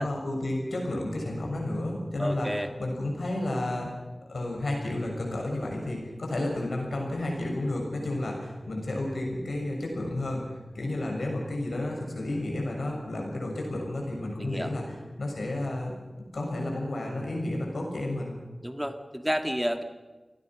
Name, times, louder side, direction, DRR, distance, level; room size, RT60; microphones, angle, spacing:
voice 1, 0.0-3.9 4.3-15.9 16.3-18.3, left 1 dB, 85° left, 0 dB, 6.7 m, -31 dB
voice 2, 2.2-2.7 14.4-14.7 18.6-19.8, equal, 5° right, 6 dB, 2.0 m, -30 dB
27.0 x 18.5 x 6.2 m, 1.3 s
wide cardioid pair, 50°, 0 cm